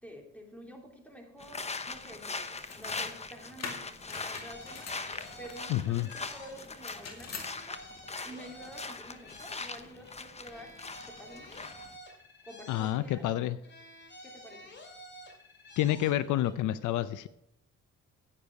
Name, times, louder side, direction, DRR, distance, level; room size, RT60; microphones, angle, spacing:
voice 1, 0.0-4.9 5.4-7.8 8.2-10.7 11.1-11.7 12.4-13.3 14.2-14.7, right 1 dB, 5° left, 1 dB, 3.0 m, -49 dB
sound 1, 1.4-12.0, left 4 dB, 20° left, 0.9 m, -41 dB
sound 2, 2.5-3.1 3.6-5.6 6.6-7.5, left 5 dB, 60° left, 2.2 m, -43 dB
sound 3, 4.0-6.9 7.2-10.1 10.4-13.3 13.6-16.5, left 1 dB, 35° left, 2.6 m, -50 dB
voice 2, 5.7-6.1 12.7-13.6 15.8-17.3, left 13 dB, 85° left, 15 dB, 0.6 m, -29 dB
9.8 x 8.9 x 4.7 m, 0.81 s
cardioid pair, 90°, 30 cm